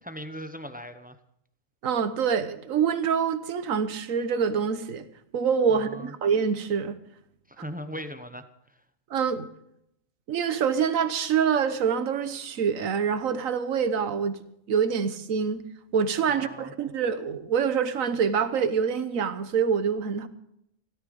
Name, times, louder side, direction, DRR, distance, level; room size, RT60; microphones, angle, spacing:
voice 1, 0.0-1.2 5.7-6.1 7.5-8.5 16.3-16.7, equal, 10° right, 9 dB, 0.7 m, -39 dB
voice 2, 1.8-5.0 5.3-7.0 9.1-9.5 10.3-14.4 14.7-15.6 15.9-20.3, right 7 dB, 75° right, 11 dB, 1.4 m, -25 dB
17.0 x 13.5 x 5.2 m, 0.75 s
omnidirectional pair, 1.4 m